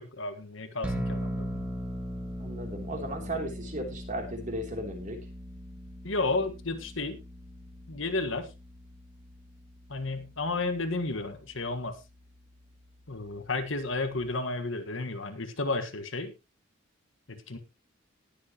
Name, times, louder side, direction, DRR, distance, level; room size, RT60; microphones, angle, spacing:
voice 1, 0.0-1.7 2.9-3.4 6.0-7.2 7.9-8.5 9.9-12.0 13.1-16.3 17.3-17.6, left 3 dB, 70° left, 8 dB, 1.6 m, -32 dB
sound 1, 0.8-14.3, equal, 5° right, 1.8 m, -40 dB
voice 2, 2.4-5.2, right 1 dB, 40° right, 3 dB, 3.1 m, -35 dB
19.0 x 7.7 x 3.0 m, 0.26 s
head